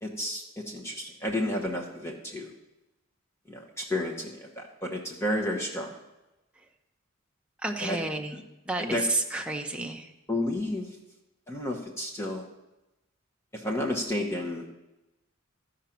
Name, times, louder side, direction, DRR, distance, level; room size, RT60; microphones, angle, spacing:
voice 1, 0.0-2.5 3.5-6.0 7.8-8.0 8.8-9.0 10.3-10.9 11.5-12.5 13.5-14.7, left 1 dB, 15° left, 0 dB, 1.0 m, -31 dB
voice 2, 7.6-10.1, right 2 dB, 5° right, 2 dB, 0.7 m, -31 dB
14.0 x 5.1 x 5.8 m, 0.98 s
head